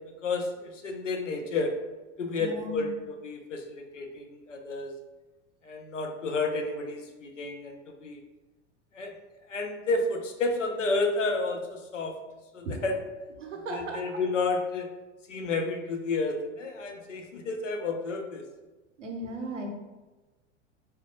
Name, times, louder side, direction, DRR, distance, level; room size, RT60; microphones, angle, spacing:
voice 1, 0.2-1.7 2.2-4.9 5.6-8.2 8.9-9.1 9.5-12.1 12.5-13.0 13.7-14.9 15.3-18.4, left 3 dB, 80° left, 4 dB, 0.5 m, -31 dB
voice 2, 2.4-2.9 12.6-12.8 13.4-14.2 19.0-19.7, right 1 dB, 75° right, 3 dB, 0.7 m, -36 dB
3.3 x 2.2 x 2.8 m, 1.2 s
figure-of-eight pair, 85°, 37 cm